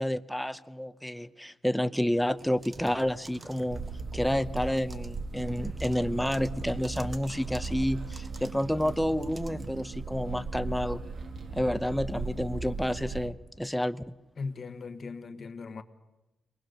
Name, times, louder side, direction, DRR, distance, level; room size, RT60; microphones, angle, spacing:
voice 1, 0.0-3.8 4.1-11.0 11.5-14.0, equal, 5° left, 0.6 m, -29 dB
sound 1, 2.4-9.8, right 2 dB, 25° right, 1.0 m, -49 dB
sound 2, 2.8-11.9, right 3 dB, 80° right, 5.4 m, -59 dB
sound 3, 3.7-13.3, right 3 dB, 55° right, 1.4 m, -37 dB
voice 2, 14.4-15.8, left 4 dB, 50° left, 1.2 m, -38 dB
23.0 x 19.5 x 6.5 m
cardioid pair, 110°, 0 cm